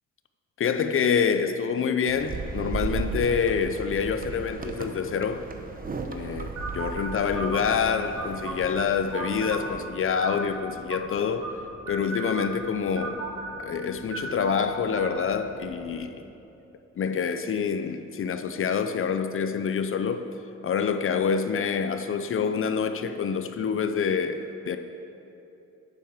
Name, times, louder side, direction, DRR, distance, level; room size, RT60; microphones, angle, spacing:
voice 1, 0.6-5.4 6.1-11.5 11.9-13.2 13.6-16.3 17.0-20.3 20.6-24.8, left 6 dB, 45° left, 0.5 m, -27 dB
sound 1, 2.1-9.8, right 4 dB, 30° right, 0.9 m, -36 dB
sound 2, 6.6-16.1, right 2 dB, 80° right, 2.7 m, -37 dB
8.9 x 6.7 x 7.2 m
cardioid pair, 90°, 30 cm